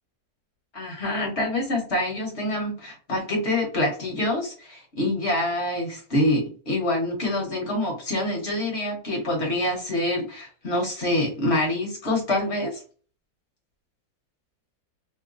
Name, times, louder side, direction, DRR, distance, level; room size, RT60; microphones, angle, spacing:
voice 1, 0.7-12.8, left 1 dB, 40° left, 0 dB, 1.3 m, -26 dB
3.0 x 2.2 x 3.9 m, 0.39 s
omnidirectional pair, 2.0 m